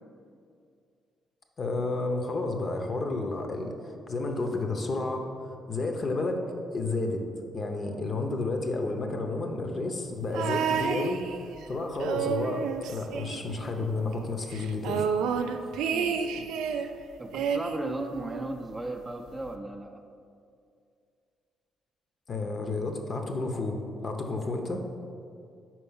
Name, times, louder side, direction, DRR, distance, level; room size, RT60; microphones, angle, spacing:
voice 1, 1.6-6.4 6.7-7.2 7.5-15.1 22.3-24.8, left 2 dB, 45° left, 4 dB, 0.7 m, -31 dB
sound 1, 10.3-11.6 12.0-13.9 14.1-14.2 14.5-16.9 17.3-18.6 19.5-19.6, right 6 dB, 90° right, 0.3 m, -30 dB
voice 2, 15.9-16.3 17.2-20.0, right 1 dB, 15° right, 5 dB, 0.4 m, -36 dB
4.5 x 4.3 x 5.5 m, 2.4 s
cardioid pair, 90°, 0 cm